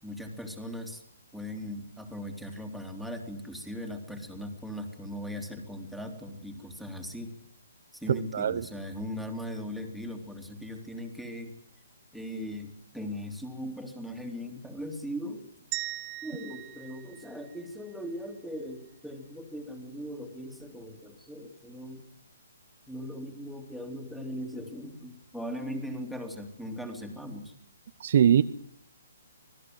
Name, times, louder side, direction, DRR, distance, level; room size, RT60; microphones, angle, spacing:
voice 1, 0.0-1.0 1.3-7.3 7.9-11.5 12.1-15.5 16.2-22.0 22.9-27.5, equal, ahead, 4 dB, 3.2 m, -39 dB
voice 2, 8.3-8.6 28.0-28.4, right 9 dB, 55° right, 11 dB, 0.9 m, -21 dB
sound 1, 15.7-18.0, right 18 dB, 25° right, 1.0 m, -39 dB
26.0 x 18.0 x 7.9 m, 0.65 s
hypercardioid pair, 150°, 0 cm